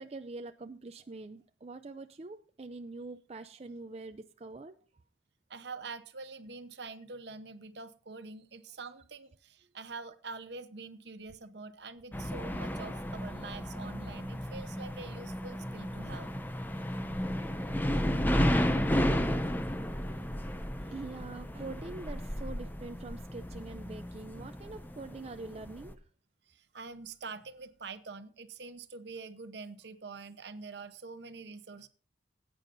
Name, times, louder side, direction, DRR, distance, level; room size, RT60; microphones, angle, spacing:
voice 1, 0.0-4.7 20.9-26.0, right 3 dB, 35° right, 8 dB, 0.4 m, -44 dB
voice 2, 5.5-16.3 26.5-31.9, right 4 dB, 65° right, 11 dB, 0.9 m, -45 dB
sound 1, 12.1-25.9, equal, 10° left, 0.6 m, -33 dB
20.0 x 9.0 x 2.6 m, 0.41 s
head